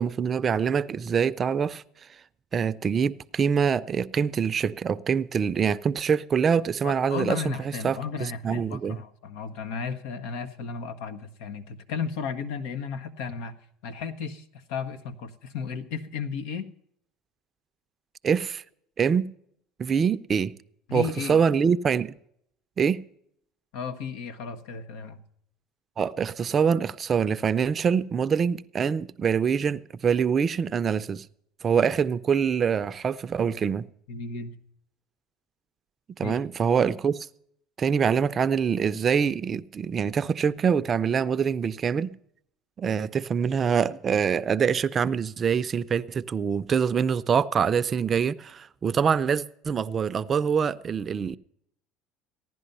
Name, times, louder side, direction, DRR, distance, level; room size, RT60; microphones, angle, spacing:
voice 1, 0.0-1.8 2.5-7.5 7.8-8.0 8.4-9.0 18.2-18.6 19.0-19.3 19.8-20.5 20.9-22.2 22.8-23.0 26.0-31.2 31.6-33.9 36.2-37.3 37.8-42.1 42.8-51.4, right 6 dB, 35° right, 0.5 m, -25 dB
voice 2, 6.8-13.6 13.8-16.7 20.9-21.4 23.7-25.2 34.1-34.6 36.2-36.4, left 6 dB, 80° left, 1.2 m, -34 dB
16.0 x 11.0 x 5.5 m
supercardioid pair, 105°, 0 cm